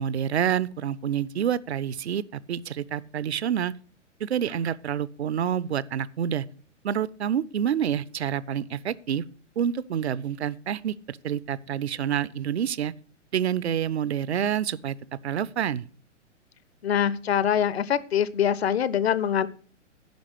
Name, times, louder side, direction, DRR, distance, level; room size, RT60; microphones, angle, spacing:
voice 1, 0.0-3.7 4.2-6.5 6.8-9.2 9.6-12.9 13.3-15.0 15.2-15.8, right 9 dB, 60° right, 0.6 m, -28 dB
voice 2, 16.8-19.5, left 9 dB, 55° left, 0.8 m, -24 dB
10.5 x 5.1 x 8.1 m
figure-of-eight pair, 115°, 37 cm